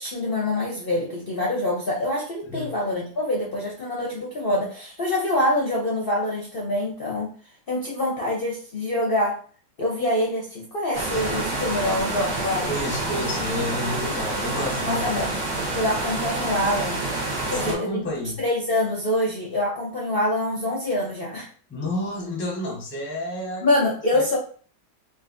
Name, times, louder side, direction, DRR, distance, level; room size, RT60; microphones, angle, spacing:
voice 1, 0.0-7.3 7.7-9.4 9.8-12.7 14.9-15.3 15.7-17.0 17.5-18.0 18.4-21.5 23.6-24.4, left 1 dB, 60° left, -2 dB, 0.6 m, -25 dB
sound 1, 10.9-17.7, right 2 dB, 85° right, 1.7 m, -28 dB
voice 2, 12.7-15.3 17.4-18.4 21.7-23.7 24.1-24.3, left 1 dB, 15° left, -3 dB, 0.5 m, -30 dB
3.8 x 2.6 x 2.5 m, 0.43 s
omnidirectional pair, 1.9 m